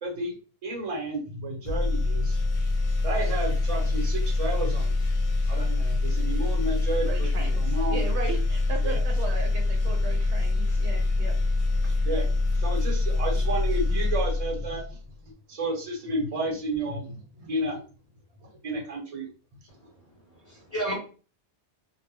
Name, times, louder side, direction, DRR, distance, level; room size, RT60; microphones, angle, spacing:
voice 1, 0.0-0.3 0.6-2.4 3.0-4.9 5.5-7.3 7.6-8.0 8.8-9.0 12.0-12.3 12.5-15.0 15.5-17.8 18.6-19.3, right 1 dB, 35° right, -1 dB, 0.8 m, -31 dB
sound 1, 1.6-15.0, left 2 dB, 65° left, 0.8 m, -25 dB
voice 2, 7.0-11.4 11.8-11.9, right 5 dB, 85° right, 2 dB, 0.9 m, -36 dB
voice 3, 19.7-20.9, right 1 dB, 35° left, -4 dB, 1.0 m, -34 dB
2.2 x 2.1 x 3.4 m, 0.37 s
omnidirectional pair, 1.1 m